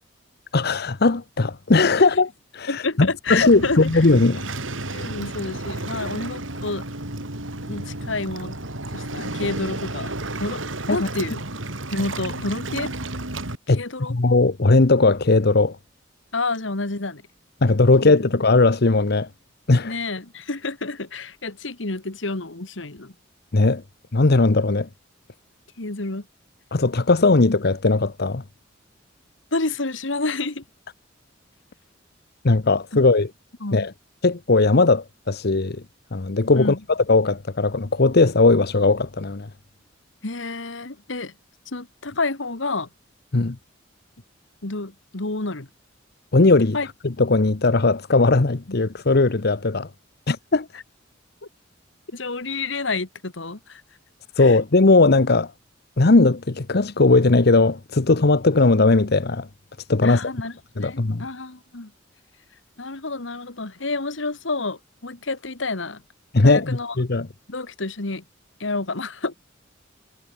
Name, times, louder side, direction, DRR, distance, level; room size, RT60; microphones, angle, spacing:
voice 1, 0.5-4.4 10.9-11.1 13.7-15.8 17.6-19.3 19.7-19.9 23.5-23.8 24.1-24.9 26.7-28.4 32.4-33.3 33.7-33.9 34.2-35.8 36.1-36.7 37.1-39.5 43.3-43.6 46.3-46.8 47.2-49.9 50.3-50.7 54.4-55.5 56.0-59.5 59.9-60.3 60.8-61.3 66.3-67.3, left 3 dB, 55° left, 0.9 m, -18 dB
voice 2, 2.7-4.1 4.9-6.9 7.6-8.6 8.9-11.4 11.9-12.9 13.7-14.2 16.3-17.2 18.0-18.4 19.8-23.1 25.8-26.3 27.4-27.5 29.5-30.6 33.6-33.9 36.6-36.8 40.2-41.3 41.7-42.9 44.6-45.7 46.7-46.9 48.7-48.8 52.1-53.8 54.4-54.6 60.0-61.9 62.8-66.0 66.4-67.0 67.5-68.2 68.6-69.4, left 3 dB, 75° left, 1.9 m, -29 dB
Waves surf, 3.3-13.6, right 2 dB, 85° right, 5.1 m, -32 dB
head